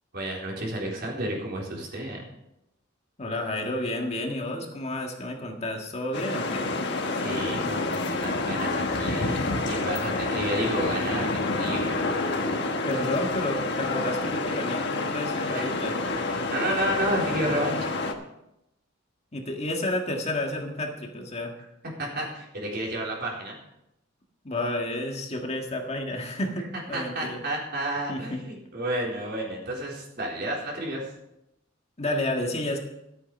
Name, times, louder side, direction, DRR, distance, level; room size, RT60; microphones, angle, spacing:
voice 1, 0.1-2.2 7.1-12.1 15.5-15.9 16.3-17.9 22.0-23.6 26.9-31.1, right 1 dB, 55° right, -2 dB, 4.0 m, -31 dB
voice 2, 3.2-6.7 12.8-16.0 19.3-21.5 24.4-27.4 28.1-28.4 32.0-32.8, left 1 dB, 35° left, 2 dB, 1.7 m, -31 dB
sound 1, 6.1-18.1, left 3 dB, 60° left, 1.3 m, -28 dB
13.0 x 8.7 x 5.4 m, 0.85 s
head